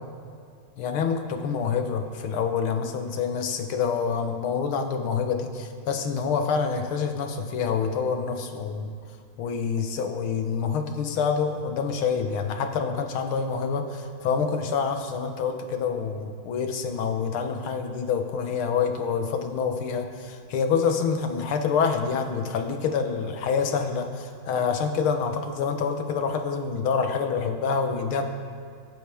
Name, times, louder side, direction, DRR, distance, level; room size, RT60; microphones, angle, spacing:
voice 1, 0.8-9.0 9.4-28.2, left 6 dB, 85° left, 5 dB, 1.9 m, -27 dB
23.0 x 10.0 x 3.5 m, 2.3 s
omnidirectional pair, 2.3 m